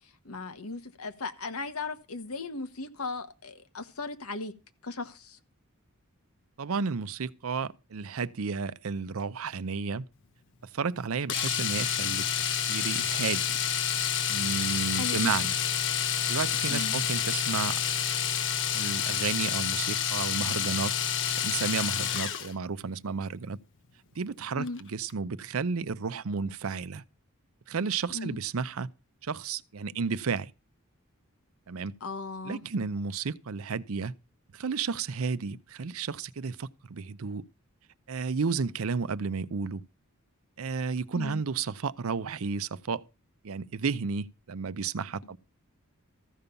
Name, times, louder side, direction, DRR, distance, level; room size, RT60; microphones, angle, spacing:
voice 1, 0.2-4.5 4.8-5.4 14.9-15.3 16.7-17.0 24.6-24.8 28.1-28.4 32.0-32.6 41.1-41.4, left 3 dB, 85° left, 1.3 m, -37 dB
voice 2, 6.6-10.0 10.7-13.6 14.3-15.6 15.9-17.8 18.7-20.9 21.3-23.6 24.2-27.0 27.7-28.9 29.2-30.5 31.7-31.9 32.4-34.1 34.5-37.4 38.1-39.8 40.6-43.0 43.4-45.4, right 5 dB, 70° right, 0.6 m, -32 dB
Domestic sounds home sounds, 11.3-22.5 24.7-24.8 25.1-25.2, left 9 dB, 60° left, 0.9 m, -29 dB
14.5 x 5.4 x 6.9 m
head